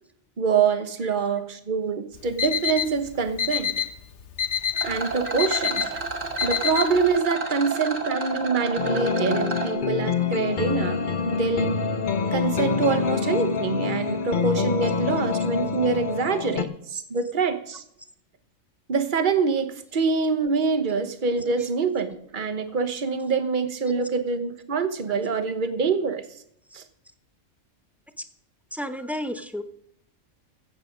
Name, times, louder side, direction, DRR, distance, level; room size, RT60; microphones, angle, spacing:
voice 1, 0.4-3.8 4.8-5.9 6.4-11.0 11.2-11.8 12.3-17.8 18.9-26.2 26.7-26.8, right 5 dB, 40° right, 9 dB, 1.2 m, -25 dB
Alarm, 2.1-7.2, left 8 dB, 65° left, 1.3 m, -28 dB
Rattle, 4.7-9.7, right 4 dB, 75° right, 2.2 m, -31 dB
sound 1, 8.8-16.7, left 5 dB, 45° left, 0.9 m, -26 dB
voice 2, 28.7-29.6, equal, ahead, 8 dB, 0.8 m, -32 dB
15.0 x 8.3 x 5.2 m, 0.72 s
omnidirectional pair, 1.3 m